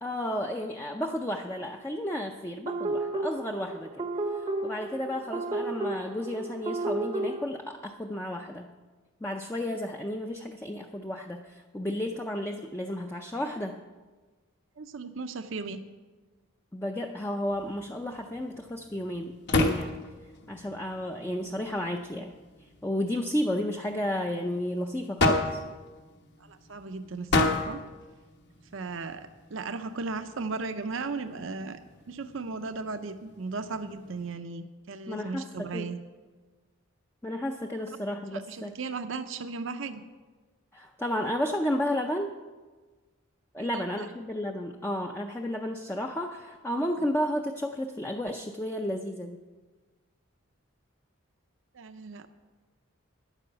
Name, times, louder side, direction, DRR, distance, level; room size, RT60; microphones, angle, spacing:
voice 1, 0.0-8.7 9.2-13.8 16.7-19.4 19.6-20.0 20.5-22.3 22.8-25.6 35.1-35.9 37.2-38.7 40.7-42.3 43.5-49.4, left 1 dB, 10° left, 2 dB, 0.5 m, -32 dB
sound 1, 2.7-7.5, right 2 dB, 25° right, 0.7 m, -32 dB
voice 2, 14.8-15.8 26.4-27.8 28.7-31.8 32.1-36.0 38.3-40.0 43.6-44.1 51.7-52.3, right 4 dB, 65° right, 9 dB, 0.6 m, -36 dB
sound 2, 17.4-34.3, left 2 dB, 55° left, 1.3 m, -34 dB
10.0 x 9.9 x 7.0 m, 1.3 s
head